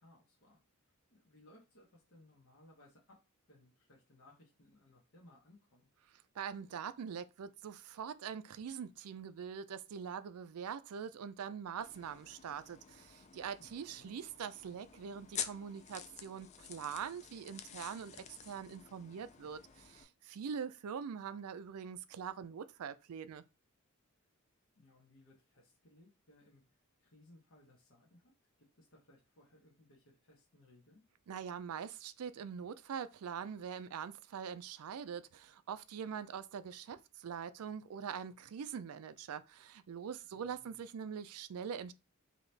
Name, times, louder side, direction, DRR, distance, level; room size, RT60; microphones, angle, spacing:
voice 1, 0.0-3.2 3.5-5.9 13.6-14.1 24.8-26.6 27.0-28.3 28.6-31.0 40.3-40.8, left 1 dB, 60° left, 1.0 m, -64 dB
voice 2, 6.4-18.1 18.5-23.4 31.3-41.9, right 7 dB, 80° right, 0.4 m, -43 dB
sound 1, 11.8-20.0, left 8 dB, 30° left, 0.4 m, -49 dB
3.9 x 2.8 x 3.3 m
head